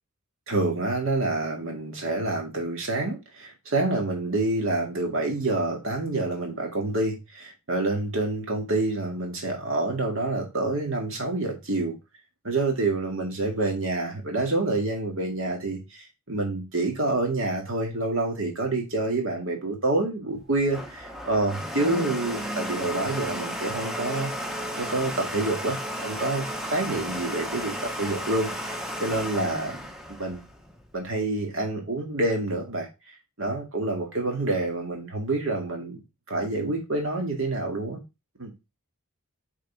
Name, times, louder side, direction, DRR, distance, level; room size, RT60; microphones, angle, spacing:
voice 1, 0.5-12.0 12.4-24.3 24.8-29.8 30.2-30.4 30.9-32.9 33.4-36.0 36.3-38.0 38.4-38.5, right 2 dB, 60° right, 2.0 m, -27 dB
Domestic sounds home sounds, 20.4-31.1, equal, ahead, 0.8 m, -34 dB
6.5 x 3.9 x 4.7 m
head